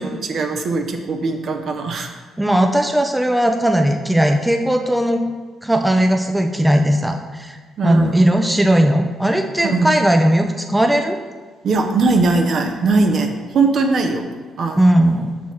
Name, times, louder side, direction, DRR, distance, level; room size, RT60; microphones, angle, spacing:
voice 1, 0.0-2.1 7.8-8.2 9.6-9.9 11.6-14.2 14.6-14.8 15.2-15.3, right 3 dB, 60° right, 4 dB, 0.7 m, -20 dB
voice 2, 2.4-5.2 5.6-7.6 7.8-11.2 14.8-15.3, right 1 dB, 5° right, 5 dB, 0.4 m, -17 dB
6.1 x 3.1 x 5.5 m, 1.4 s
cardioid pair, 90°, 0 cm